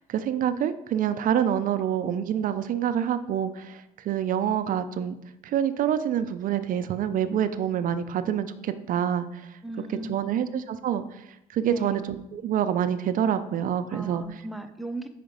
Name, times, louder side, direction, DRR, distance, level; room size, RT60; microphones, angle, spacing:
voice 1, 0.1-5.1 5.4-9.6 10.1-14.2, right 9 dB, 55° right, 11 dB, 0.4 m, -27 dB
voice 2, 9.6-10.4 11.6-12.0 13.9-15.1, right 1 dB, ahead, 6 dB, 0.6 m, -37 dB
5.0 x 4.7 x 5.2 m, 0.86 s
cardioid pair, 110°, 17 cm